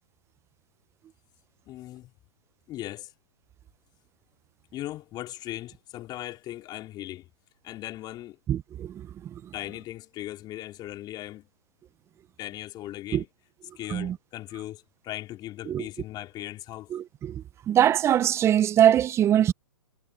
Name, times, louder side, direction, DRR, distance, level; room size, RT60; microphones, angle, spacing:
voice 1, 1.7-2.1 2.7-3.1 4.7-7.3 7.6-8.4 9.5-11.5 12.4-13.3 13.8-16.9, left 14 dB, 25° left, 3.3 m, -38 dB
voice 2, 8.5-8.9 13.1-13.2 13.9-14.1 15.7-15.8 17.2-17.3 17.7-19.5, right 10 dB, 15° right, 0.6 m, -21 dB
hypercardioid pair, 130°, 16 cm